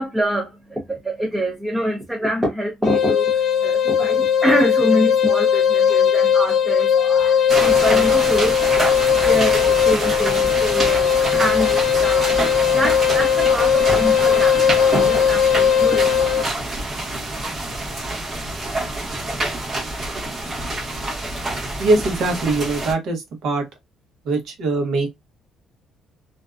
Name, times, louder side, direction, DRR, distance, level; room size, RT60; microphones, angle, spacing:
voice 1, 0.0-8.7 9.3-16.3, equal, 10° right, 0.6 m, -25 dB
sound 1, 2.8-16.5, left 8 dB, 50° left, 0.4 m, -18 dB
sound 2, 7.5-22.9, right 2 dB, 25° right, 1.0 m, -26 dB
voice 2, 21.8-23.7 24.2-25.1, right 3 dB, 60° right, 0.9 m, -21 dB
2.5 x 2.2 x 2.3 m
cardioid pair, 160°, 0 cm